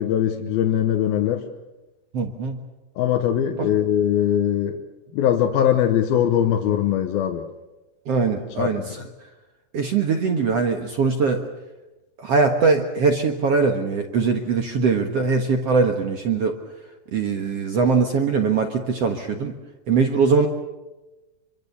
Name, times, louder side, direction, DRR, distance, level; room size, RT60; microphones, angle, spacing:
voice 1, 0.0-1.5 3.0-4.8 5.1-7.5 8.6-8.9, left 10 dB, 70° left, 4 dB, 2.7 m, -21 dB
voice 2, 2.1-2.6 3.6-3.7 8.1-9.0 9.7-11.5 12.2-16.5 17.1-19.5 19.9-20.5, right 4 dB, 60° right, 4 dB, 1.6 m, -21 dB
26.0 x 24.0 x 6.9 m, 1.1 s
omnidirectional pair, 4.8 m